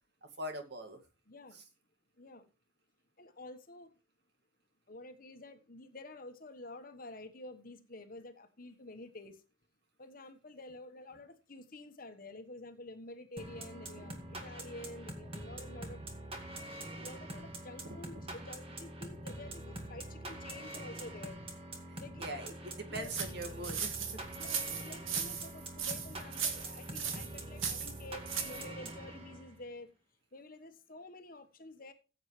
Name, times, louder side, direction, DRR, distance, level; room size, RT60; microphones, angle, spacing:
voice 1, 0.4-1.0 21.9-24.0, right 1 dB, 55° right, 5 dB, 2.3 m, -42 dB
voice 2, 1.3-1.6 2.2-2.5 3.2-3.9 4.9-9.4 10.0-16.1 17.0-21.4 22.0-22.3 22.9-23.1 24.4-29.9 30.3-31.9, left 2 dB, 45° left, 8 dB, 1.3 m, -49 dB
sound 1, 13.4-29.7, right 1 dB, 30° right, 2.0 m, -45 dB
sound 2, 23.0-28.6, right 7 dB, 75° right, 2.0 m, -38 dB
15.5 x 8.1 x 3.3 m, 0.32 s
head